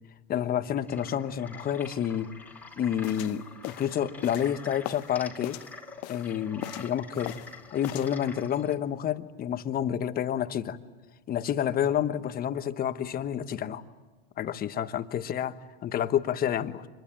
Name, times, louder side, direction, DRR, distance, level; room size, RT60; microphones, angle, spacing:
voice 1, 0.3-2.3 2.8-5.6 6.1-7.4 7.7-10.8 11.3-13.8 14.4-16.9, left 9 dB, 30° left, 11 dB, 1.2 m, -29 dB
sound 1, 0.8-8.8, left 3 dB, 5° left, 2.6 m, -46 dB
sound 2, 3.0-5.1 5.4-6.3 6.6-7.5 7.8-8.1, left 18 dB, 50° left, 0.9 m, -40 dB
26.0 x 21.5 x 8.9 m, 1.2 s
hypercardioid pair, 115°, 30 cm